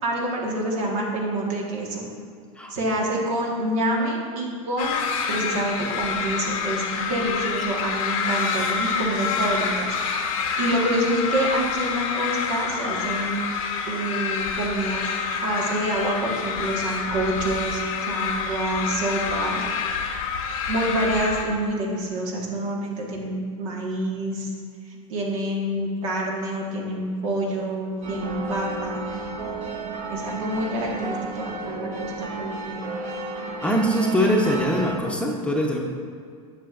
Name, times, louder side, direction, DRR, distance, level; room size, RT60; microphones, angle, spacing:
voice 1, 0.0-2.1 2.7-5.0 5.3-9.9 10.6-13.4 13.9-15.1 15.4-19.6 20.7-24.5 24.8-29.1 30.1-32.8, right 1 dB, 70° right, -2 dB, 1.6 m, -27 dB
sound 1, 4.8-21.4, left 5 dB, 80° left, 0.9 m, -27 dB
sound 2, 28.0-35.0, right 3 dB, 45° right, 1.2 m, -33 dB
voice 2, 33.6-35.8, equal, 5° left, -1 dB, 0.8 m, -22 dB
9.0 x 6.3 x 2.5 m, 2.2 s
hypercardioid pair, 100°, 18 cm